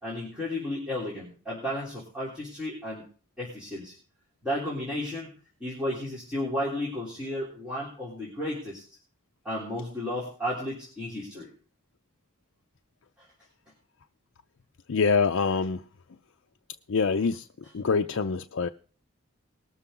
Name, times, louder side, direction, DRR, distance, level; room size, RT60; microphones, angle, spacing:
voice 1, 0.0-3.0 3.4-3.9 4.4-5.3 5.6-8.9 9.5-11.5, left 1 dB, 5° right, -7 dB, 3.5 m, -33 dB
voice 2, 14.9-15.8 16.9-17.5 17.7-18.7, left 5 dB, 85° left, 6 dB, 0.5 m, -25 dB
20.5 x 7.1 x 3.8 m, 0.38 s
head